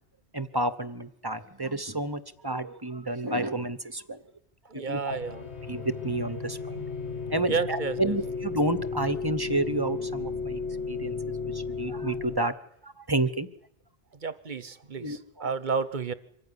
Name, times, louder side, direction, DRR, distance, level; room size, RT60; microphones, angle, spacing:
voice 1, 0.3-4.2 4.7-5.2 5.7-6.8 7.3-10.6 10.9-12.6 12.8-13.5 15.0-15.5, right 2 dB, 20° right, 13 dB, 1.0 m, -30 dB
voice 2, 4.7-5.4 7.5-8.2 14.2-16.1, right 5 dB, 45° right, 14 dB, 1.1 m, -31 dB
sound 1, 5.1-12.4, left 4 dB, 75° left, 1.8 m, -34 dB
25.0 x 15.0 x 9.9 m, 0.76 s
omnidirectional pair, 1.2 m